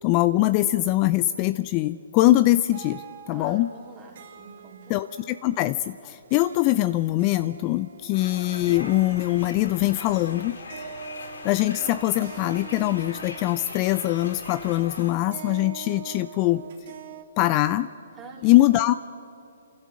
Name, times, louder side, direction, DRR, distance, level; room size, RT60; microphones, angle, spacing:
voice 1, 0.0-3.7 4.9-10.6 11.4-16.6 17.4-17.9 18.4-18.9, left 16 dB, 30° left, 13 dB, 0.4 m, -22 dB
sound 1, 2.7-17.2, right 7 dB, 50° right, 2.3 m, -45 dB
voice 2, 3.3-5.0 18.2-18.5, right 4 dB, 15° right, -1 dB, 4.0 m, -45 dB
sound 2, 8.1-15.1, left 3 dB, 75° left, 4.3 m, -40 dB
29.0 x 12.0 x 7.4 m, 2.8 s
hypercardioid pair, 145°, 0 cm